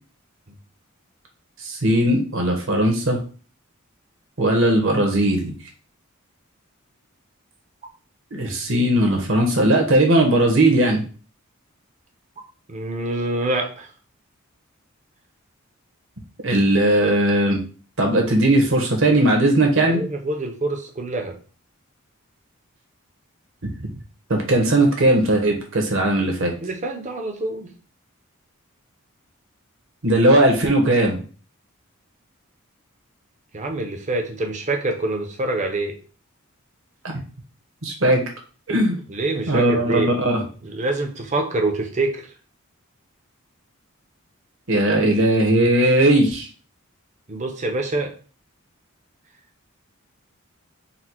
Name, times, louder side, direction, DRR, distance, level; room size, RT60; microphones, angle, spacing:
voice 1, 1.6-3.2 4.4-5.5 8.3-11.0 16.4-17.6 18.0-20.0 23.6-23.7 24.3-26.5 30.0-31.2 37.8-38.2 38.7-39.0 39.5-40.4 44.7-46.5, right 1 dB, 65° right, 2 dB, 1.2 m, -18 dB
voice 2, 12.7-13.9 19.8-21.3 26.6-27.7 33.5-35.9 39.1-40.1 40.6-42.3 47.3-48.1, right 2 dB, 35° right, 3 dB, 0.8 m, -26 dB
4.2 x 2.3 x 4.4 m, 0.39 s
head